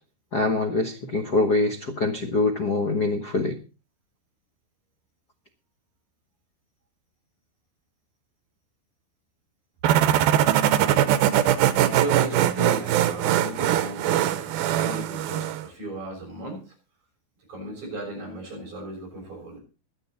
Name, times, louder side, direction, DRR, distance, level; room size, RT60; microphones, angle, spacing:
voice 1, 0.3-3.6 10.0-10.2, left 2 dB, 65° left, 4 dB, 0.9 m, -24 dB
sound 1, 9.8-15.6, right 11 dB, 90° right, 2.8 m, -21 dB
voice 2, 11.8-16.7 17.5-19.6, right 1 dB, 50° right, 0 dB, 7.4 m, -35 dB
23.0 x 8.2 x 4.2 m, 0.33 s
omnidirectional pair, 4.2 m